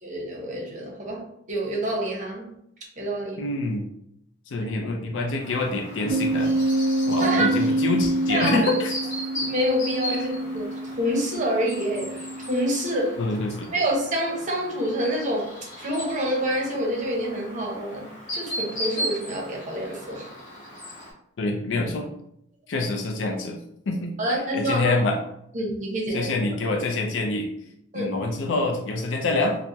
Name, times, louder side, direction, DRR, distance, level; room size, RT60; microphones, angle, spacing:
voice 1, 0.0-2.5 3.0-3.4 4.6-4.7 7.2-7.7 8.3-8.6 9.3-13.2 13.7-15.5 15.8-20.3 24.2-25.0 25.5-26.3 27.9-28.1, right 1 dB, 40° right, -1 dB, 0.7 m, -27 dB
voice 2, 3.4-3.9 4.5-6.5 7.1-8.9 10.2-10.3 13.2-13.7 21.4-22.1 22.7-23.6 23.9-24.2 24.5-25.2 26.1-27.5 27.9-29.6, left 2 dB, 70° left, 2 dB, 0.4 m, -26 dB
Chirp tweet, 5.4-21.1, equal, 45° left, 1.0 m, -37 dB
sound 1, 6.1-13.1, right 1 dB, 60° right, 0.3 m, -27 dB
3.3 x 2.0 x 2.7 m, 0.75 s
head